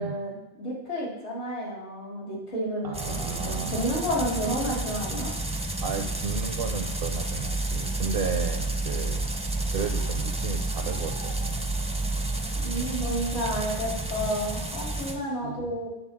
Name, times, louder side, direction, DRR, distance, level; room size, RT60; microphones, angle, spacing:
voice 1, 0.0-5.3 12.6-15.9, equal, 75° left, -5 dB, 3.4 m, -31 dB
voice 2, 2.8-4.0 5.8-9.2 9.7-11.6 12.8-13.1 15.4-15.8, right 5 dB, 60° right, 5 dB, 0.9 m, -33 dB
Field Watering Sprinklers, 2.9-15.2, right 2 dB, 5° right, 0.6 m, -30 dB
9.3 x 4.1 x 7.3 m, 0.96 s
omnidirectional pair, 1.2 m